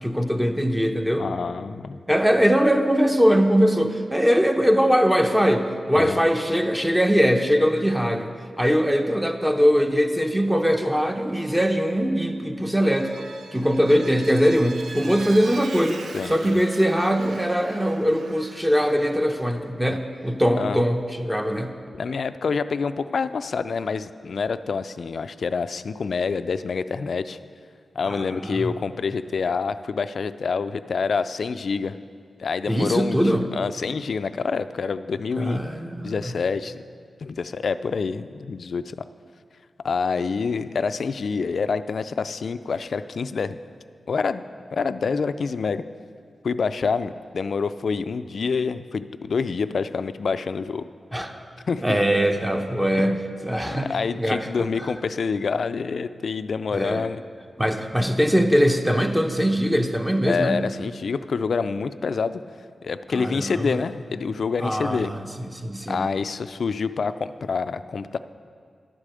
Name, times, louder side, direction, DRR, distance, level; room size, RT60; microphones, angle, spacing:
voice 1, 0.0-1.3 2.1-8.3 8.6-13.1 13.5-21.7 28.1-28.7 32.7-33.4 35.3-36.3 51.1-51.4 51.8-53.9 54.2-54.9 56.7-57.0 57.6-60.7 63.1-63.8 64.6-66.1, equal, 10° right, 5 dB, 0.8 m, -21 dB
voice 2, 1.2-2.0 5.9-6.2 16.1-16.6 20.6-20.8 21.9-27.4 28.0-32.0 32.4-33.2 33.5-35.6 36.0-36.8 37.2-39.0 39.8-43.6 44.1-45.8 46.4-50.9 51.7-52.0 52.9-53.2 53.7-57.2 60.3-62.4 62.8-65.1 65.9-68.2, left 5 dB, 70° left, 12 dB, 0.3 m, -27 dB
Vehicle, 12.7-19.1, right 3 dB, 80° right, 0.7 m, -41 dB
11.5 x 4.9 x 7.5 m, 2.3 s
cardioid pair, 60°, 0 cm